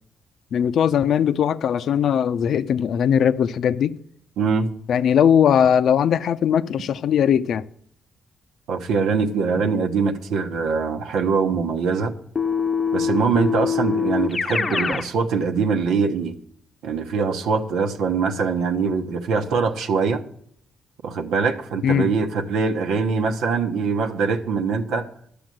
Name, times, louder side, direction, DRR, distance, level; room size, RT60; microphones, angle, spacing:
voice 1, 0.5-4.0 4.9-7.6 21.8-22.1, left 8 dB, 65° left, 0.6 m, -19 dB
voice 2, 4.4-4.7 8.7-12.1 12.9-16.4 16.8-20.2 21.0-25.1, right 5 dB, 85° right, 1.1 m, -23 dB
Keyboard (musical), 12.4-15.1, left 6 dB, 35° left, 0.7 m, -23 dB
12.0 x 6.9 x 7.7 m
cardioid pair, 90°, 0 cm